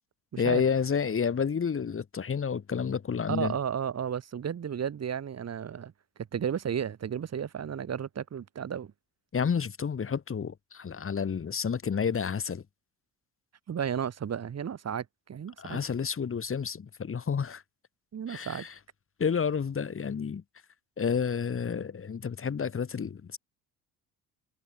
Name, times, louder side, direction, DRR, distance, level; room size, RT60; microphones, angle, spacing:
voice 1, 0.4-3.5 9.3-12.6 15.6-17.6 18.3-18.7 19.2-20.4 21.0-23.4, left 6 dB, 35° left, 3.7 m, -30 dB
voice 2, 3.3-5.9 6.3-8.9 13.7-15.8 18.1-18.7, right 8 dB, 40° right, 4.7 m, -33 dB
hypercardioid pair, 65°, 38 cm